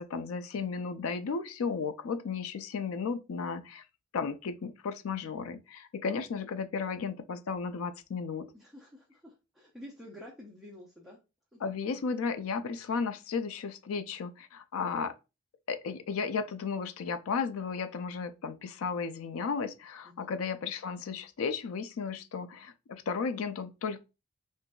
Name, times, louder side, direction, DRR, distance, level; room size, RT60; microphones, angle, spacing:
voice 1, 0.0-3.8 4.1-8.5 11.6-15.2 15.7-24.0, left 5 dB, 80° left, 0.4 m, -34 dB
voice 2, 8.5-11.2 11.5-11.6 20.0-20.3, left 1 dB, ahead, 0.6 m, -50 dB
3.7 x 2.6 x 2.2 m
head